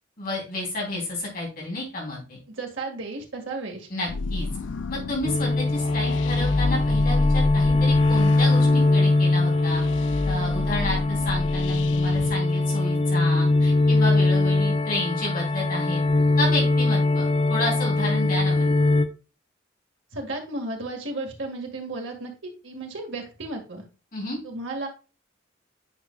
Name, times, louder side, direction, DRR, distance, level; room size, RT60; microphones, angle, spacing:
voice 1, 0.2-2.4 3.9-4.5 4.9-9.8 10.2-16.0 16.4-18.7 24.1-24.4, left 1 dB, 50° left, -2 dB, 3.2 m, -31 dB
voice 2, 2.5-3.9 20.1-23.8 24.4-24.9, right 2 dB, 85° right, 1 dB, 1.8 m, -34 dB
sound 1, 4.1-12.3, left 3 dB, 70° left, 0.4 m, -30 dB
sound 2, 5.2-19.1, left 2 dB, 30° left, 0.6 m, -21 dB
9.3 x 5.1 x 2.3 m, 0.32 s
head